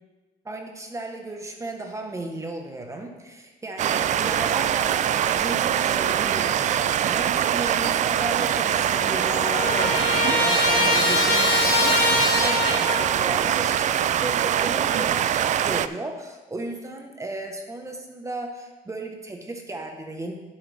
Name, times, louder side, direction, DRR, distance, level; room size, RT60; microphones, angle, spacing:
voice 1, 0.4-20.3, right 2 dB, 15° right, 3 dB, 1.3 m, -35 dB
sound 1, 3.8-15.9, right 10 dB, 45° right, 0.4 m, -23 dB
Trumpet, 8.4-8.5 8.7-13.1, left 3 dB, 65° left, 1.5 m, -24 dB
10.5 x 8.2 x 3.5 m, 1.2 s
cardioid pair, 110°, 17 cm